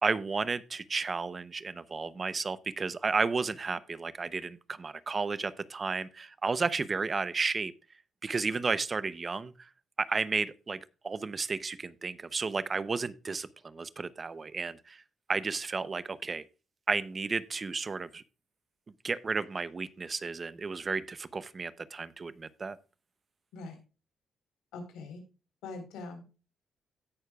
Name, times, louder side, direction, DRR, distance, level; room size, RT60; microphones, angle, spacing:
voice 1, 0.0-7.7 8.2-9.7 10.0-10.8 11.0-15.0 15.3-16.4 16.9-18.2 19.0-22.8, right 4 dB, 35° right, 0.6 m, -32 dB
voice 2, 24.7-25.2 25.6-26.4, left 3 dB, 90° left, 3.8 m, -42 dB
17.0 x 6.5 x 2.3 m
cardioid pair, 90°, 0 cm